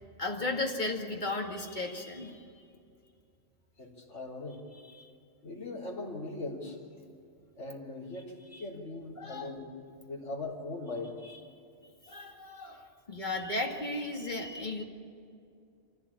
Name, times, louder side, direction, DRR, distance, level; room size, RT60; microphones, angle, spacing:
voice 1, 0.2-2.6 4.7-5.1 8.5-8.6 9.2-9.5 11.2-11.4 12.0-14.8, left 2 dB, 35° left, 1 dB, 2.4 m, -35 dB
voice 2, 3.8-4.6 5.4-6.8 7.6-9.7 10.0-11.1, left 2 dB, 65° left, -4 dB, 4.0 m, -40 dB
25.5 x 16.0 x 8.6 m, 2.4 s
omnidirectional pair, 1.3 m